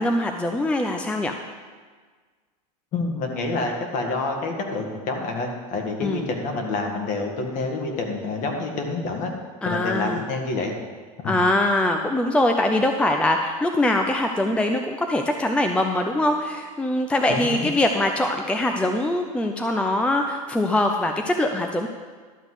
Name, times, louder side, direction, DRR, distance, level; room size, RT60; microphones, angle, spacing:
voice 1, 0.0-1.4 6.0-6.2 9.6-10.2 11.2-21.9, left 1 dB, 5° left, 4 dB, 0.4 m, -23 dB
voice 2, 2.9-9.3 9.6-10.8 11.2-11.4 17.3-17.7, left 3 dB, 45° left, 2 dB, 1.8 m, -28 dB
12.0 x 4.1 x 8.0 m, 1.5 s
supercardioid pair, 130°, 19 cm